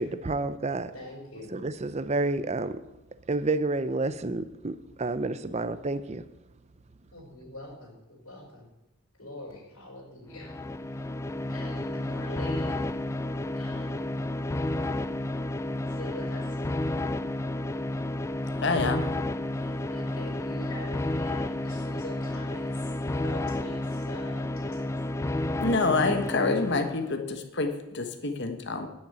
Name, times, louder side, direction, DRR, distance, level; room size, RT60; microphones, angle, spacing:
voice 1, 0.0-0.9 1.5-2.8 3.3-6.2, right 2 dB, 30° right, 14 dB, 0.6 m, -29 dB
voice 2, 0.9-1.5 7.1-8.7 9.2-10.5 11.5-12.9 13.5-14.1 15.9-16.6 19.6-24.9, left 1 dB, 80° left, -7 dB, 4.7 m, -44 dB
sound 1, 10.3-27.1, left 1 dB, 15° left, 0.3 m, -31 dB
voice 3, 18.6-19.0 25.6-28.9, left 3 dB, 55° left, 6 dB, 1.3 m, -27 dB
10.0 x 6.6 x 8.5 m, 0.94 s
head